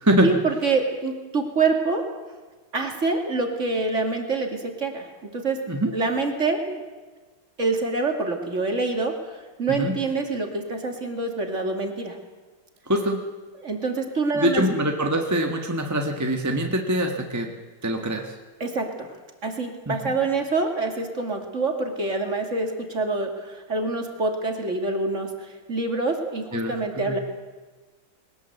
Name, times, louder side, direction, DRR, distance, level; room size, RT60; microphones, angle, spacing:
voice 1, 0.2-2.0 2.7-5.1 5.3-5.6 5.9-6.8 7.6-12.2 13.6-14.6 18.6-19.2 19.4-27.2, right 3 dB, 35° right, 3 dB, 2.7 m, -26 dB
voice 2, 12.9-13.2 14.3-17.5 17.8-18.3 19.9-20.1 26.5-27.1, right 1 dB, 10° right, 2 dB, 1.4 m, -24 dB
21.0 x 19.0 x 8.1 m, 1.3 s
omnidirectional pair, 2.4 m